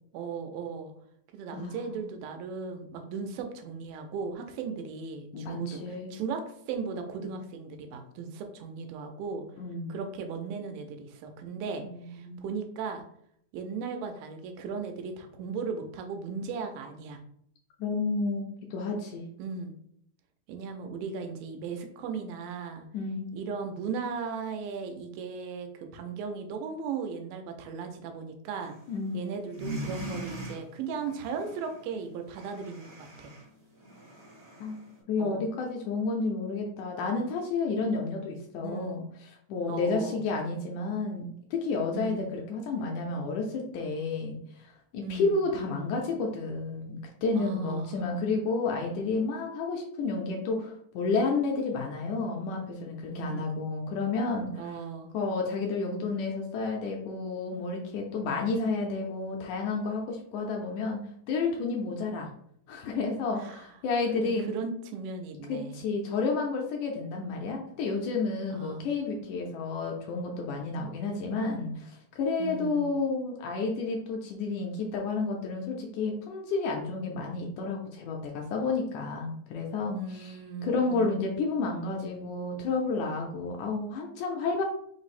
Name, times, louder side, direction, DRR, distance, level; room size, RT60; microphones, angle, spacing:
voice 1, 0.1-0.9 1.3-5.8 6.1-9.5 9.9-13.0 13.5-17.2 19.4-19.7 20.5-22.9 23.3-28.8 29.1-33.3 35.2-35.5 38.6-39.0 39.7-40.2 41.9-42.3 45.0-45.4 47.4-48.0 53.1-53.5 54.5-55.1 63.4-63.6 64.2-65.8 68.5-68.8 72.4-72.9 79.9-81.2, right 5 dB, 90° right, 5 dB, 2.3 m, -37 dB
voice 2, 1.5-2.0 5.3-6.1 9.6-10.0 11.7-12.5 17.8-18.4 18.7-19.3 22.9-23.3 28.9-29.3 34.6-34.8 35.1-39.0 39.5-54.8 55.1-61.0 61.3-62.3 62.7-64.4 65.5-80.4 80.6-84.6, left 3 dB, 80° left, 0 dB, 1.8 m, -31 dB
sound 1, 28.6-29.1 29.4-35.0, right 1 dB, 55° right, 0.7 m, -42 dB
5.2 x 2.0 x 4.1 m, 0.70 s
omnidirectional pair, 3.9 m